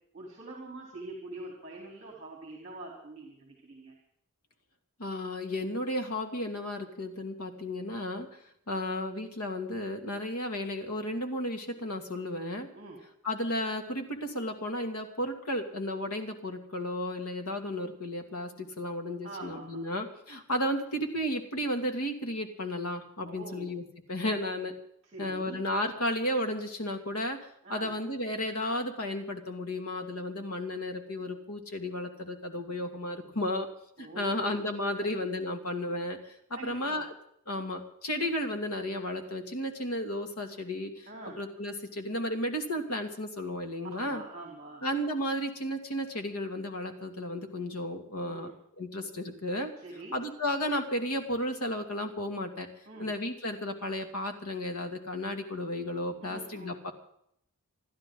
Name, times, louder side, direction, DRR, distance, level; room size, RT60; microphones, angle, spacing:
voice 1, 0.1-3.9 12.7-13.0 19.2-19.8 23.2-23.7 25.0-25.6 27.6-27.9 34.0-34.6 35.0-35.1 36.5-37.1 41.1-41.4 43.8-44.8 48.2-48.5 49.8-50.2 52.9-53.1 56.2-56.8, right 2 dB, 30° right, -1 dB, 3.7 m, -44 dB
voice 2, 5.0-8.3 8.7-12.7 13.2-23.8 24.1-24.7 25.2-33.7 34.0-37.1 37.5-41.1 41.4-44.2 44.8-48.5 48.8-49.7 50.1-52.7 53.0-56.9, left 1 dB, 80° left, 4 dB, 2.5 m, -33 dB
28.5 x 12.0 x 3.9 m, 0.71 s
head